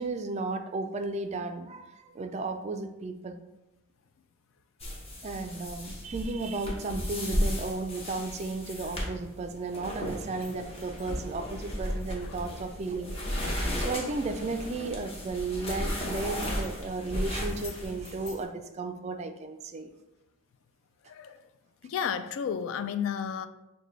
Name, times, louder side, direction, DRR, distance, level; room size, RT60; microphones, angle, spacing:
voice 1, 0.0-3.4 5.2-19.9, right 3 dB, 35° right, 7 dB, 0.3 m, -34 dB
sound 1, 4.8-18.4, equal, 30° left, 0.8 m, -35 dB
voice 2, 21.1-21.4 21.8-23.5, left 7 dB, 75° left, 12 dB, 0.3 m, -32 dB
6.5 x 2.2 x 3.1 m, 0.97 s
head